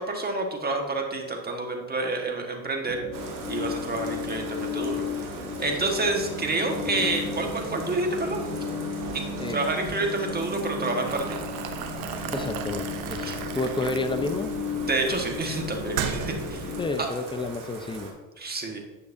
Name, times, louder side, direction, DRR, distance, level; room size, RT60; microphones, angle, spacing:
voice 1, 0.0-3.0 3.5-5.3 5.6-8.5 9.1-11.4 13.2-13.4 14.9-16.6 17.0-17.1 18.4-18.8, right 2 dB, 20° right, 2 dB, 1.5 m, -28 dB
sound 1, 2.8-16.9, left 5 dB, 60° left, 2.3 m, -35 dB
Bathtub (filling or washing), 3.1-18.1, right 3 dB, 50° right, 2.0 m, -40 dB
Boiling, 11.1-16.8, right 8 dB, 90° right, 0.8 m, -35 dB
voice 2, 12.3-14.5 16.8-18.1, left 2 dB, 10° left, 8 dB, 0.7 m, -30 dB
9.7 x 6.4 x 2.7 m, 1.1 s
hypercardioid pair, 75°, 42 cm